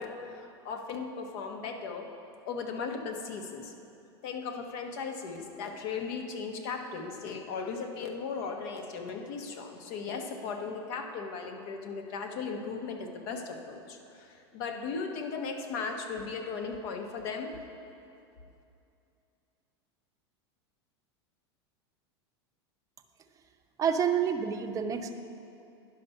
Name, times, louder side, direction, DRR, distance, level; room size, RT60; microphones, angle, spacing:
voice 1, 0.0-2.1 2.5-3.7 4.2-17.5, left 5 dB, 60° left, 4 dB, 1.1 m, -37 dB
voice 2, 23.8-25.1, right 7 dB, 25° right, 4 dB, 0.6 m, -28 dB
10.5 x 5.8 x 5.5 m, 2.7 s
supercardioid pair, 115°, 14 cm